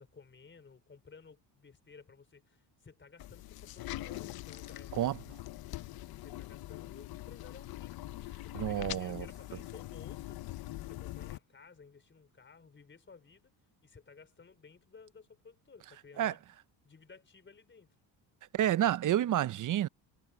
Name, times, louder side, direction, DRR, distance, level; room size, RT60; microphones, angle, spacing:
voice 1, 0.0-4.9 5.7-10.4 10.8-13.5 13.8-16.4 16.8-17.9, left 5 dB, 25° left, 4.5 m, -56 dB
sound 1, 3.2-11.4, left 16 dB, 55° left, 0.7 m, -43 dB
voice 2, 8.6-9.3 16.2-16.3 18.5-19.9, right 12 dB, 45° right, 0.7 m, -29 dB
cardioid pair, 100°, 43 cm